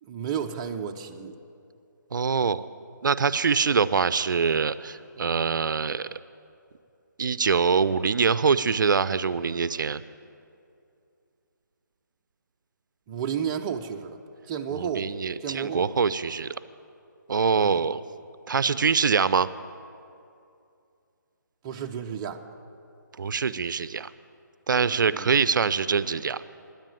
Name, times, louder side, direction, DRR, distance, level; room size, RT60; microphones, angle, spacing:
voice 1, 0.0-1.4 13.1-14.2 14.5-15.1 15.4-15.9 17.6-17.8 21.6-22.4 25.1-25.4, right 7 dB, 20° right, 3 dB, 0.5 m, -32 dB
voice 2, 2.1-2.7 3.0-6.1 7.2-10.0 14.7-16.5 17.3-18.0 18.5-19.5 23.2-24.1 24.7-26.4, right 5 dB, 75° right, 16 dB, 0.4 m, -24 dB
10.0 x 9.0 x 9.0 m, 2.5 s
hypercardioid pair, 155°, 11 cm